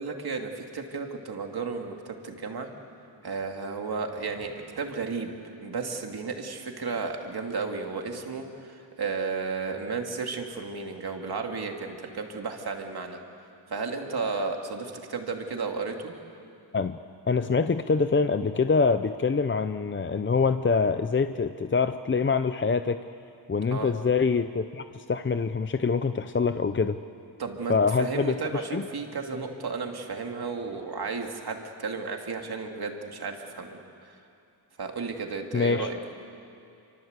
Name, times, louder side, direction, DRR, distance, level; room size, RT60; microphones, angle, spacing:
voice 1, 0.0-2.7 3.2-13.2 13.7-16.1 23.7-23.9 27.4-34.1 34.8-36.1, right 4 dB, 55° right, 3 dB, 2.6 m, -33 dB
voice 2, 17.3-23.0 23.5-27.0 27.7-28.8 35.5-35.9, left 4 dB, 25° left, 10 dB, 0.6 m, -25 dB
28.5 x 25.0 x 8.2 m, 2.6 s
wide cardioid pair, 165°, 44 cm